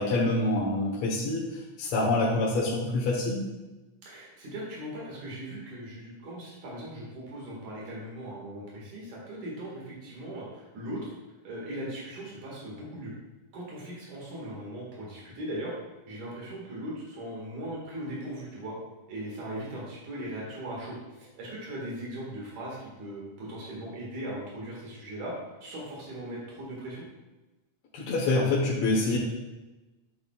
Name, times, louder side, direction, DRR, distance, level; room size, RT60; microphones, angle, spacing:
voice 1, 0.0-3.5 27.9-29.2, left 2 dB, 65° left, -5 dB, 2.2 m, -26 dB
voice 2, 4.0-11.1 11.4-13.1 13.5-15.7 16.1-18.8 19.1-25.3 25.6-27.0, right 1 dB, 80° right, -4 dB, 3.5 m, -39 dB
11.0 x 7.3 x 2.4 m, 1.1 s
omnidirectional pair, 3.5 m